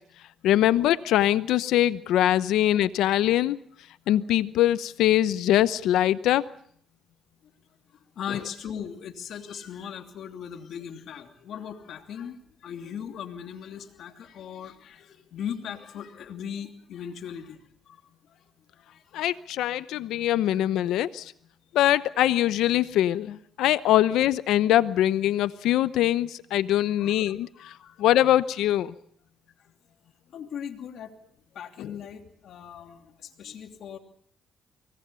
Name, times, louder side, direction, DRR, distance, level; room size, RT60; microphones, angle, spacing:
voice 1, 0.4-3.6 4.1-6.4 19.1-21.3 21.7-27.5 28.0-28.9 31.8-31.9, left 13 dB, 85° left, 15 dB, 0.9 m, -23 dB
voice 2, 8.2-17.6 17.9-18.0 18.3-18.4 18.8-19.3 20.5-20.6 27.0-28.2 29.6-29.7 30.3-31.2 31.5-34.0, left 8 dB, 70° left, 5 dB, 2.9 m, -39 dB
24.5 x 19.0 x 7.0 m, 0.65 s
cardioid pair, 90°, 0 cm